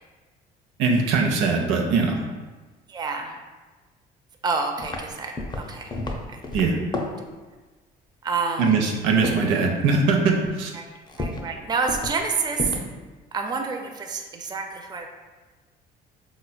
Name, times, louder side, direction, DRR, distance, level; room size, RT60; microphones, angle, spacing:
voice 1, 0.8-2.2 6.5-6.8 8.6-10.7, right 4 dB, 75° right, 1 dB, 0.6 m, -21 dB
voice 2, 2.9-3.3 4.4-5.9 6.3-6.4 8.2-8.8 10.7-10.9 11.2-12.8 13.3-15.1, right 4 dB, 20° right, 3 dB, 0.4 m, -28 dB
sound 1, 4.8-5.1 5.4-7.3 8.6-9.0 9.2-9.5 10.2-10.5 11.1-11.5 11.9-12.2 12.5-12.9, left 2 dB, 20° left, 0.6 m, -31 dB
3.9 x 3.1 x 2.2 m, 1.3 s
hypercardioid pair, 65°, 20 cm